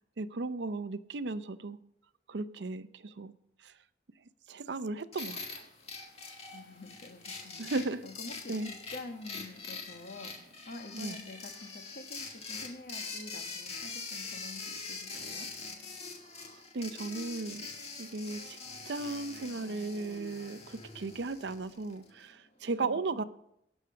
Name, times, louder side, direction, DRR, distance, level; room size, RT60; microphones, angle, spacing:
voice 1, 0.2-1.8 2.3-3.3 4.5-5.7 7.6-8.1 8.5-8.7 10.9-11.2 16.7-17.7 18.0-18.6 18.9-23.2, right 3 dB, 70° right, 14 dB, 0.6 m, -36 dB
sound 1, 5.1-22.1, left 4 dB, 35° left, 1.8 m, -43 dB
voice 2, 6.5-7.6 8.0-10.4 10.7-15.5 22.8-23.2, left 2 dB, 55° left, 5 dB, 1.5 m, -47 dB
17.5 x 6.4 x 5.7 m, 0.79 s
head